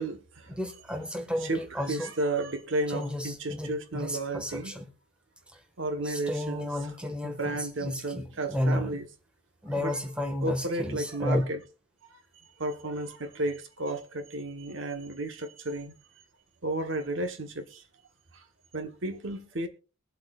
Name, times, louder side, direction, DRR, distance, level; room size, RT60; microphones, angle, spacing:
voice 1, 0.0-0.6 1.4-4.8 5.8-6.7 7.2-9.0 9.7-10.0 10.4-11.6 12.1-16.2 16.6-17.8 18.3-18.5 18.7-19.7, right 2 dB, 65° right, 1.2 m, -33 dB
voice 2, 0.6-2.1 2.9-4.9 6.0-8.9 9.6-11.4, left 1 dB, 5° right, 1.6 m, -32 dB
22.5 x 7.7 x 2.4 m
head